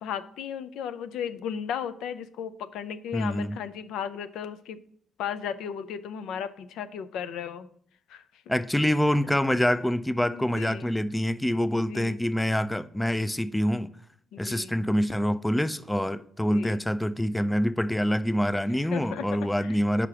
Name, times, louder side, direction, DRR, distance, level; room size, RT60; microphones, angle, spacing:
voice 1, 0.0-4.8 5.2-7.7 8.1-8.4 10.3-10.9 11.7-12.2 14.3-14.7 16.5-16.8 18.7-19.3 19.6-19.8, left 8 dB, 85° left, 0.4 m, -35 dB
voice 2, 3.1-3.6 8.5-13.9 14.4-20.1, equal, 5° left, 0.3 m, -26 dB
4.9 x 4.8 x 5.7 m
cardioid pair, 90°, 0 cm